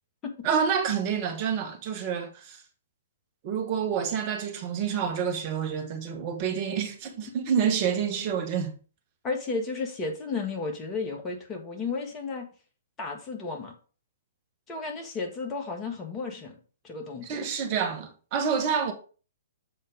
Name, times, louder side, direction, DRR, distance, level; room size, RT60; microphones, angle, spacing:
voice 1, 0.4-2.6 3.4-8.7 17.3-18.9, right 7 dB, 40° right, 1.8 m, -28 dB
voice 2, 9.2-12.5 13.0-13.7 14.7-16.6 16.8-17.4, left 4 dB, 20° left, 1.9 m, -33 dB
7.6 x 4.4 x 5.2 m
figure-of-eight pair, 120°, 0 cm